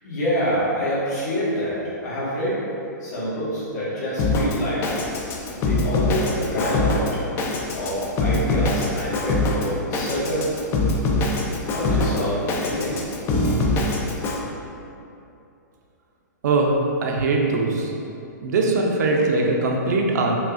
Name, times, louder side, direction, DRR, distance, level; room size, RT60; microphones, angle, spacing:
voice 1, 0.0-2.6 3.0-4.8 5.5-7.2 7.7-10.5 11.7-13.0, equal, 65° left, -9 dB, 1.4 m, -26 dB
Drum kit, 4.2-14.4, left 2 dB, 20° left, 0.3 m, -24 dB
voice 2, 17.0-17.9 18.4-20.3, right 3 dB, 65° right, 0 dB, 0.6 m, -21 dB
5.0 x 2.4 x 2.5 m, 2.7 s
hypercardioid pair, 140°, 10 cm